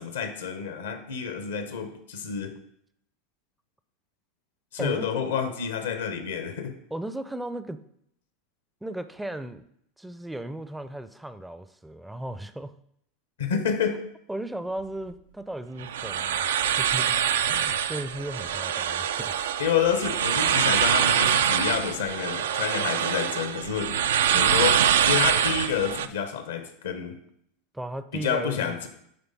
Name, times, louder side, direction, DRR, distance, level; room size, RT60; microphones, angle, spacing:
voice 1, 0.0-2.6 4.7-6.7 13.4-14.0 19.6-24.0 24.3-27.2 28.1-28.9, left 7 dB, 75° left, 8 dB, 0.8 m, -29 dB
voice 2, 4.8-5.3 6.9-7.8 8.8-9.6 10.0-12.7 14.3-17.2 17.5-19.4 27.7-28.9, right 1 dB, 5° right, 11 dB, 0.4 m, -36 dB
sound 1, 15.8-26.1, right 9 dB, 75° right, 0.3 m, -24 dB
8.9 x 3.3 x 4.0 m, 0.72 s
hypercardioid pair, 85°, 0 cm